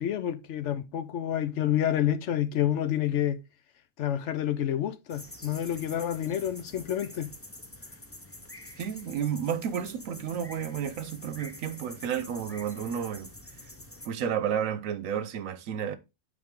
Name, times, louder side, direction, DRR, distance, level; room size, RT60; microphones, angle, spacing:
voice 1, 0.0-3.4 4.0-7.3, left 11 dB, 70° left, 0.9 m, -28 dB
sound 1, 5.1-14.1, left 1 dB, 15° left, 0.7 m, -47 dB
voice 2, 8.8-13.3 14.0-16.0, right 8 dB, 80° right, 1.1 m, -31 dB
8.6 x 4.1 x 3.6 m
omnidirectional pair, 1.4 m